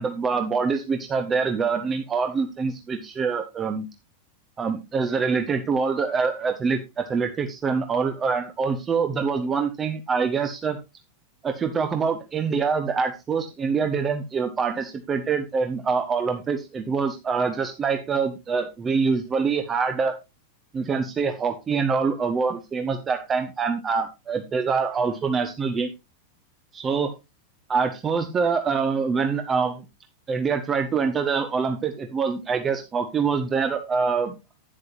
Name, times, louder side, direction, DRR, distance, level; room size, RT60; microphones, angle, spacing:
voice 1, 0.0-3.9 4.6-10.8 11.4-20.1 20.7-25.9 26.7-27.1 27.7-29.8 30.3-34.4, right 5 dB, 20° right, 6 dB, 1.2 m, -25 dB
11.5 x 9.7 x 2.6 m, 0.25 s
figure-of-eight pair, 90°, 0 cm